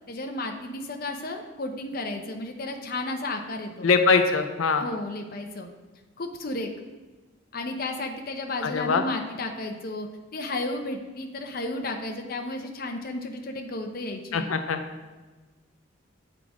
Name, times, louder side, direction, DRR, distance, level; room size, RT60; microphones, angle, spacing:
voice 1, 0.1-3.9 4.8-5.7 6.2-6.7 7.5-14.5, left 2 dB, 45° left, 4 dB, 0.7 m, -33 dB
voice 2, 3.8-4.9 8.6-9.0 14.3-14.8, left 4 dB, 90° left, 6 dB, 0.5 m, -22 dB
8.6 x 3.9 x 4.7 m, 1.2 s
head